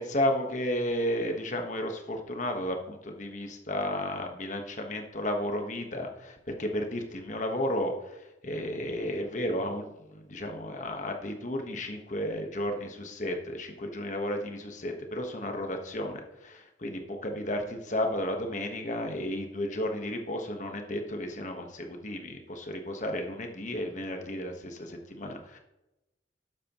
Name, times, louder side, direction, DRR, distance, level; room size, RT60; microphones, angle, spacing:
voice 1, 0.0-25.6, left 1 dB, 40° left, 4 dB, 1.3 m, -33 dB
12.5 x 9.4 x 3.1 m, 0.95 s
head